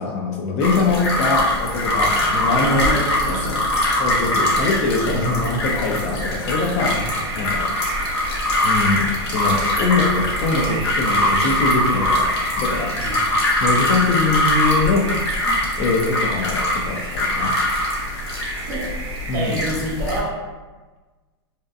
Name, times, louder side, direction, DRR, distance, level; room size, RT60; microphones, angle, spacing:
voice 1, 0.0-3.0 3.3-3.4 4.0-7.0 7.4-7.7 8.6-12.9 13.6-15.1 15.8-17.5 19.3-19.5, left 3 dB, 40° left, 0 dB, 0.5 m, -23 dB
sound 1, 0.6-20.2, left 1 dB, 75° left, 0.8 m, -22 dB
voice 2, 2.5-4.1 5.1-5.4 6.9-7.1 13.0-13.2 15.4-15.6 18.7-18.9 19.3-20.3, right 1 dB, 60° right, -2 dB, 0.8 m, -28 dB
sound 2, 6.8-19.7, right 4 dB, 90° right, 0.4 m, -34 dB
2.7 x 2.1 x 2.4 m, 1.3 s
hypercardioid pair, 130°, 14 cm